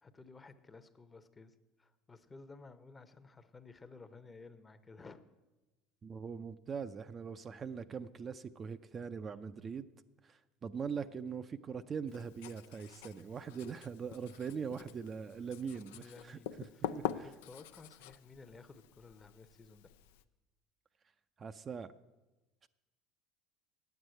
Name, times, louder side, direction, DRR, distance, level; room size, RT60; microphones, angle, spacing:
voice 1, 0.0-5.2 13.4-13.5 15.9-19.9, left 4 dB, 20° left, 11 dB, 0.8 m, -55 dB
voice 2, 6.0-9.9 10.2-16.4 16.9-17.3 21.4-21.9 22.6-22.7, right 6 dB, 35° right, 10 dB, 0.5 m, -42 dB
Writing, 12.1-20.2, left 10 dB, 85° left, 0.4 m, -45 dB
9.5 x 8.1 x 9.0 m, 1.1 s
supercardioid pair, 95°, 0 cm